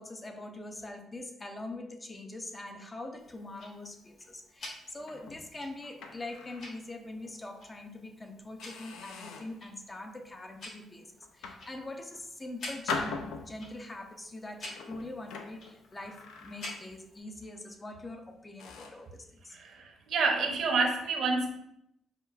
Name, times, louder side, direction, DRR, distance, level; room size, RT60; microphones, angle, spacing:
voice 1, 0.0-13.2 13.5-19.6, left 2 dB, 25° left, 4 dB, 0.4 m, -43 dB
Tick-tock, 3.2-17.2, left 1 dB, 60° left, 0.9 m, -50 dB
sound 1, 5.0-6.8 7.2-7.4 8.0-8.1 8.6-9.6 10.2-10.5 11.2-12.2 12.9-13.9 14.6-17.0 17.3-17.6 18.1-18.2 18.6-19.1, left 4 dB, 85° left, 0.4 m, -41 dB
voice 2, 19.5-21.5, right 4 dB, 70° right, 3 dB, 0.6 m, -28 dB
4.4 x 2.3 x 2.4 m, 0.75 s
cardioid pair, 90°, 0 cm